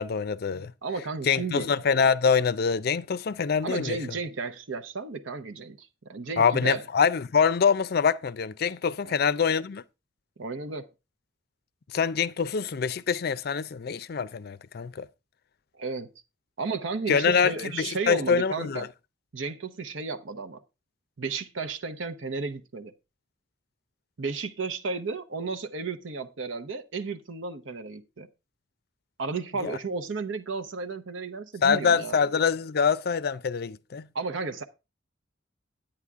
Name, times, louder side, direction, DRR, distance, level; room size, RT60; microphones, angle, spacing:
voice 1, 0.0-0.7 1.3-4.0 6.4-9.8 11.9-15.1 17.1-18.9 29.6-29.8 31.6-34.1, left 6 dB, 50° left, 0.4 m, -25 dB
voice 2, 0.5-1.7 3.6-6.8 9.0-9.2 10.4-10.9 15.7-16.1 16.6-18.9 19.3-20.6 21.2-22.9 24.2-28.3 29.2-32.2 34.1-34.6, right 4 dB, 80° right, 0.8 m, -33 dB
9.7 x 9.0 x 3.6 m
head